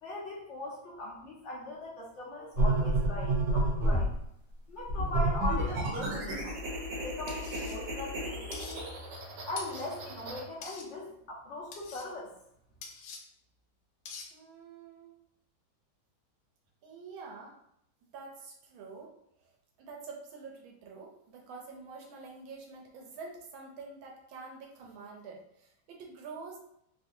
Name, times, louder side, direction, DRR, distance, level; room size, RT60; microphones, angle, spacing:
voice 1, 0.0-4.1 4.7-6.6 7.0-8.9 9.4-12.3, left 2 dB, 50° left, -5 dB, 0.9 m, -40 dB
sound 1, 2.6-4.2 4.9-10.4, right 1 dB, 65° right, 1.2 m, -31 dB
sound 2, 7.3-7.8 8.5-8.8 9.6-9.9 10.6-10.9 11.7-12.1 12.8-13.2 14.1-14.3, left 5 dB, 90° left, 1.4 m, -44 dB
voice 2, 14.3-15.2 16.8-17.5 18.1-19.5 19.8-26.6, right 4 dB, 80° right, 0 dB, 1.4 m, -47 dB
3.4 x 2.5 x 2.6 m, 0.75 s
omnidirectional pair, 2.2 m